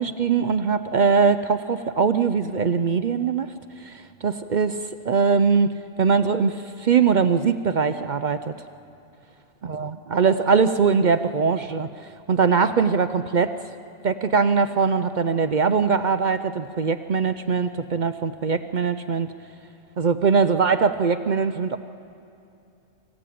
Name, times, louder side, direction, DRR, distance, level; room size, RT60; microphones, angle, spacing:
voice 1, 0.0-4.8 5.1-8.5 9.6-11.9 12.3-13.5 14.0-19.3 20.0-21.8, right 5 dB, 50° right, 11 dB, 0.6 m, -21 dB
24.5 x 16.0 x 8.5 m, 2.7 s
omnidirectional pair, 1.3 m